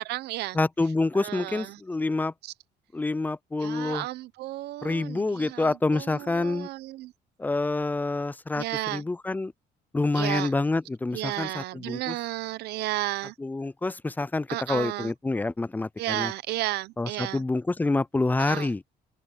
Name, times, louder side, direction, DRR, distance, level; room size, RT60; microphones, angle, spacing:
voice 1, 0.0-0.6 1.2-1.8 2.4-2.5 3.6-7.1 8.6-9.0 10.1-10.5 11.1-13.3 14.5-15.1 16.0-17.4 18.4-18.7, right 17 dB, 80° right, 0.8 m, -33 dB
voice 2, 0.5-2.3 2.9-4.1 4.8-6.7 7.4-9.5 9.9-12.2 13.4-16.3 17.0-18.8, left 2 dB, 10° left, 0.5 m, -27 dB
open air
cardioid pair, 110°, 17 cm